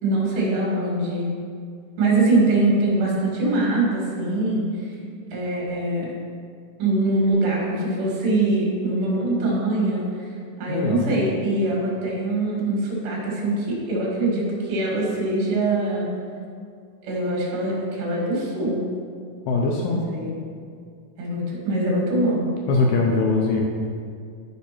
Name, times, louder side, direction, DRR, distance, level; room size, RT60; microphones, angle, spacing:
voice 1, 0.0-1.3 2.0-4.7 5.3-6.1 6.8-10.0 10.6-16.1 17.0-18.8 19.8-20.4 21.2-22.5, right 2 dB, 90° right, -4 dB, 4.3 m, -23 dB
voice 2, 10.7-11.1 19.4-20.1 22.7-23.6, left 3 dB, 80° left, -1 dB, 2.5 m, -21 dB
12.5 x 5.1 x 4.5 m, 2.2 s
omnidirectional pair, 4.6 m